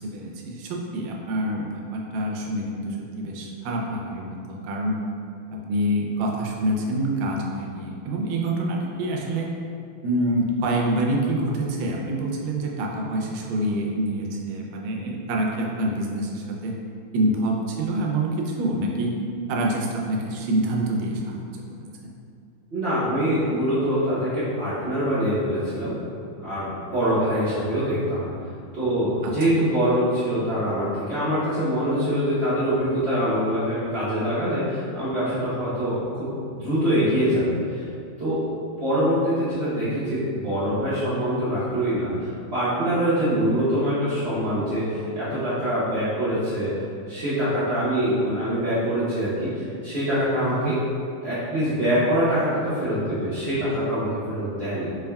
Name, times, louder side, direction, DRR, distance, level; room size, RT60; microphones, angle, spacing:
voice 1, 0.0-5.0 5.7-9.5 10.0-16.8 17.1-19.1 19.5-21.5 22.0-22.1 29.2-29.6 50.4-50.7, right 1 dB, 80° right, -1 dB, 1.4 m, -26 dB
voice 2, 22.7-25.9 26.4-28.3 28.7-36.3 36.5-37.9 38.2-38.4 38.8-42.1 42.5-46.7 47.1-50.7 51.2-54.9, equal, 50° right, -14 dB, 0.7 m, -24 dB
3.9 x 3.5 x 2.2 m, 2.4 s
omnidirectional pair, 2.3 m